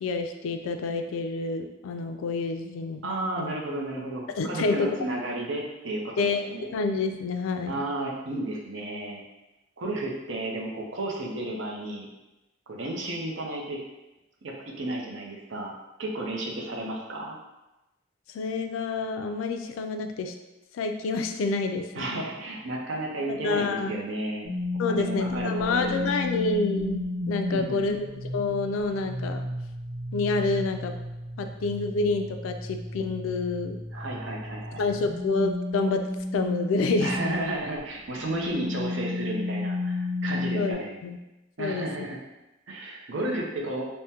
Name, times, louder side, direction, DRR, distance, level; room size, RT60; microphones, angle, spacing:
voice 1, 0.0-3.5 4.4-4.9 6.2-6.4 6.7-7.7 18.3-20.3 20.7-22.2 23.3-23.9 24.8-28.0 28.3-29.5 30.1-30.9 31.4-33.8 34.8-36.0 36.3-37.4 40.5-41.2 41.6-41.9, left 3 dB, 85° left, 6 dB, 0.3 m, -28 dB
voice 2, 3.0-6.7 7.7-9.2 9.8-12.1 12.7-13.8 14.4-15.7 16.0-17.4 21.9-24.5 24.8-25.9 26.3-26.4 27.5-28.0 33.9-34.8 37.0-41.0 41.6-42.2 42.7-43.9, right 1 dB, 70° right, -1 dB, 0.6 m, -33 dB
sound 1, 24.4-37.5 38.1-40.7, left 2 dB, 90° right, 0.9 m, -33 dB
3.5 x 2.1 x 2.8 m, 1.0 s
head